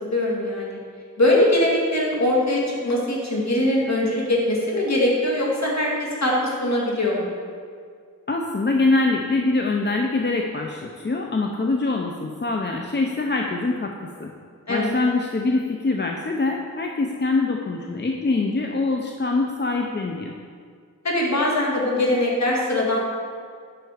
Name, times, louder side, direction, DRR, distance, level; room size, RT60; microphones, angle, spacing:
voice 1, 0.0-0.8 1.2-7.3 14.7-14.9 21.0-23.0, left 1 dB, 55° left, -4 dB, 2.2 m, -22 dB
voice 2, 8.3-14.3 14.7-20.3, left 3 dB, 35° left, 1 dB, 0.6 m, -24 dB
9.5 x 5.8 x 5.0 m, 2.1 s
wide cardioid pair, 85°, 32 cm